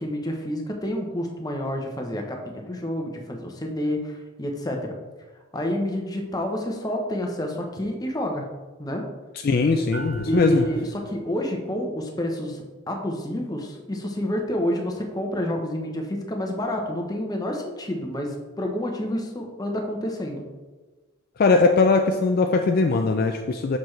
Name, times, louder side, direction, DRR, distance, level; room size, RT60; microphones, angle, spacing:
voice 1, 0.0-5.0 5.5-8.5 8.8-9.1 10.2-20.4, left 1 dB, 20° left, 2 dB, 0.8 m, -29 dB
voice 2, 9.4-10.6 21.4-23.8, left 3 dB, 45° left, 5 dB, 0.3 m, -20 dB
sound 1, 9.9-11.4, equal, 65° right, 1.1 m, -36 dB
6.8 x 5.9 x 3.2 m, 1.3 s
head